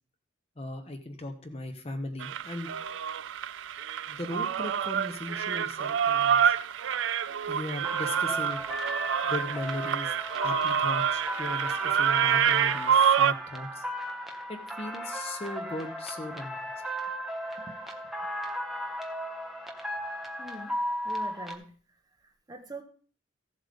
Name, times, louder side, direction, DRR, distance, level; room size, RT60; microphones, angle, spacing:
voice 1, 0.6-2.7 4.1-6.5 7.5-8.6 9.2-13.8 14.5-16.7, left 1 dB, 30° left, 6 dB, 1.0 m, -38 dB
sound 1, 2.2-13.3, right 8 dB, 75° right, 0.4 m, -27 dB
sound 2, 7.8-21.5, right 1 dB, ahead, 1.0 m, -35 dB
voice 2, 20.4-20.8 21.0-21.7 22.2-22.8, right 2 dB, 20° right, 4 dB, 1.2 m, -43 dB
15.0 x 7.6 x 3.6 m, 0.43 s
head